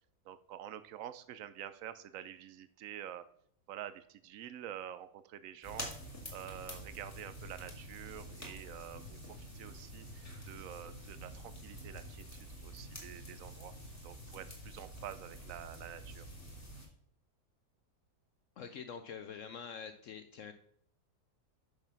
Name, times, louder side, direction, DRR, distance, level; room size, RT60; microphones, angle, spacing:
voice 1, 0.3-3.3 3.7-5.9 6.3-12.2 12.6-13.8 14.0-16.3, right 11 dB, 75° right, 13 dB, 0.7 m, -47 dB
sound 1, 5.6-16.9, equal, 10° left, 2.1 m, -48 dB
voice 2, 18.6-20.5, left 6 dB, 75° left, 9 dB, 0.7 m, -45 dB
6.7 x 6.1 x 5.8 m, 0.67 s
omnidirectional pair, 1.9 m